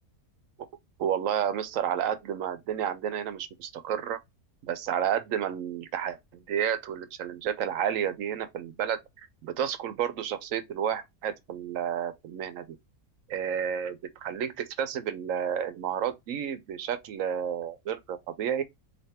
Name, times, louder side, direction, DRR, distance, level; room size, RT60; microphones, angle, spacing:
voice 1, 1.0-4.2 4.6-9.0 9.4-12.8 13.3-18.6, right 9 dB, 70° right, 0.9 m, -31 dB
3.4 x 2.8 x 4.3 m
omnidirectional pair, 1.6 m